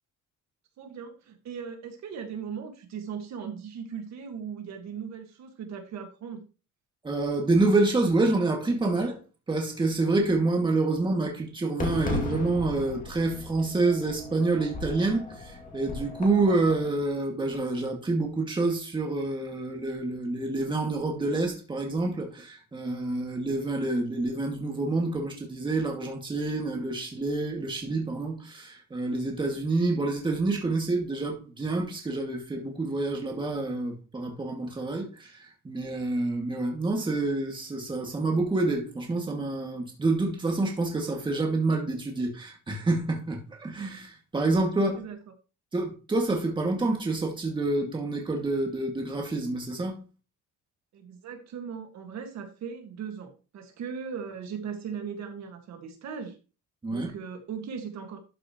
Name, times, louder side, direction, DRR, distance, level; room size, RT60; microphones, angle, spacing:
voice 1, 0.8-6.4 44.8-45.2 50.9-56.4 56.9-58.2, right 7 dB, 60° right, 1.8 m, -38 dB
voice 2, 7.0-9.2 9.5-45.0 45.7-50.0 56.8-57.1, right 2 dB, 15° right, 2.1 m, -27 dB
Fireworks, 11.8-16.9, left 3 dB, 25° left, 2.5 m, -36 dB
12.5 x 6.2 x 3.1 m
cardioid pair, 170°, 32 cm